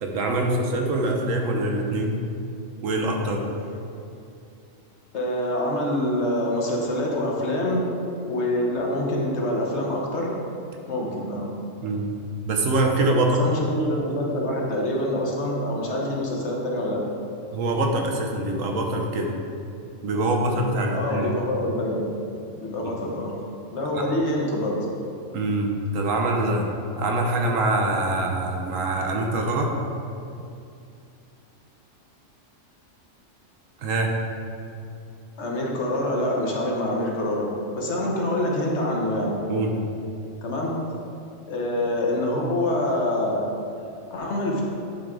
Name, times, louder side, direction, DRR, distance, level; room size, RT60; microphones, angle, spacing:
voice 1, 0.0-2.2 2.8-3.5 11.8-12.1 12.5-13.4 17.5-19.4 20.0-21.3 25.3-26.7 27.0-29.7 33.8-34.2 39.5-39.8, right 2 dB, 85° right, 2 dB, 1.2 m, -24 dB
voice 2, 5.1-7.9 8.3-10.3 10.9-11.5 13.2-17.0 20.9-22.1 22.5-23.3 23.7-24.9 35.4-37.5 37.7-39.4 40.4-40.8 41.5-43.5 44.1-44.6, left 1 dB, 60° left, -2 dB, 1.3 m, -26 dB
8.7 x 4.6 x 3.7 m, 2.6 s
omnidirectional pair, 1.3 m